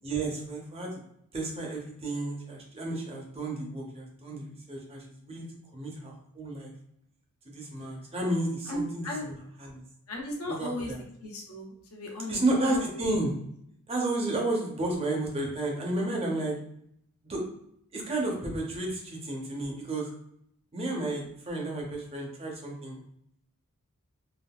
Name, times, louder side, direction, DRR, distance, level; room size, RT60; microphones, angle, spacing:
voice 1, 0.0-1.0 1.3-5.4 5.7-6.7 7.4-9.8 10.5-11.0 12.3-13.3 13.9-16.6 17.2-17.4 17.9-20.1 20.7-23.0, right 2 dB, 25° right, -1 dB, 0.7 m, -32 dB
voice 2, 8.7-9.2 10.1-10.9 11.2-12.4 12.7-13.0, left 1 dB, 70° left, 0 dB, 0.8 m, -36 dB
3.5 x 2.4 x 2.3 m, 0.73 s
head